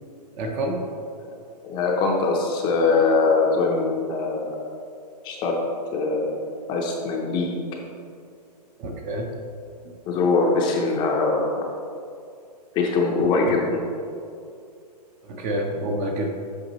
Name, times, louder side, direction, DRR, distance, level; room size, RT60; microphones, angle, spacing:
voice 1, 0.3-0.8 8.8-9.3 13.2-13.3 15.2-16.3, right 1 dB, 25° right, 2 dB, 0.8 m, -28 dB
voice 2, 1.6-4.5 5.2-5.6 5.9-6.3 6.7-7.6 10.1-11.6 12.7-13.8, left 3 dB, 20° left, 0 dB, 0.7 m, -22 dB
8.2 x 6.4 x 3.0 m, 2.4 s
hypercardioid pair, 150°, 21 cm